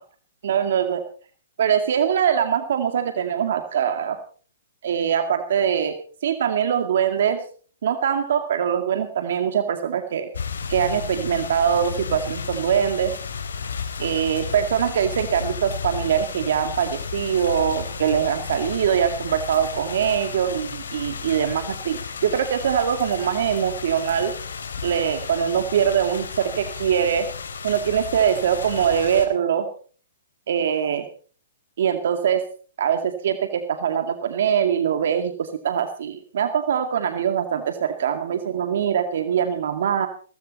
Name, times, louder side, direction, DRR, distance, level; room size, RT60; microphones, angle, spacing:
voice 1, 0.4-1.0 1.6-4.2 4.8-5.9 6.2-7.4 7.8-10.3 10.7-13.2 14.0-24.3 24.8-27.3 27.6-29.7 30.5-31.1 31.8-32.5 32.8-40.1, right 8 dB, 65° right, 8 dB, 2.2 m, -23 dB
sound 1, 10.3-29.3, left 6 dB, 80° left, 3.6 m, -33 dB
17.5 x 15.0 x 4.2 m, 0.41 s
hypercardioid pair, 145°, 0 cm